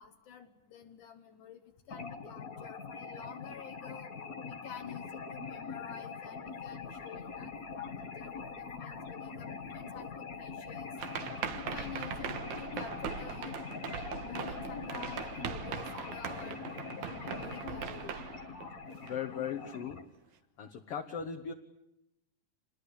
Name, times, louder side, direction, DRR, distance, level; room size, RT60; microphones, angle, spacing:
voice 1, 0.0-4.1 4.5-10.9 11.5-13.6 13.9-16.6 17.0-18.2, left 8 dB, 70° left, 6 dB, 2.7 m, -49 dB
sound 1, 1.9-20.0, left 5 dB, 35° left, 1.5 m, -43 dB
sound 2, 6.5-11.9, right 3 dB, 45° right, 5.0 m, -58 dB
sound 3, 11.0-19.4, right 8 dB, 65° right, 2.6 m, -40 dB
voice 2, 19.0-20.0 20.6-21.5, left 7 dB, 55° left, 5 dB, 1.9 m, -38 dB
27.5 x 20.5 x 10.0 m, 0.88 s
omnidirectional pair, 3.8 m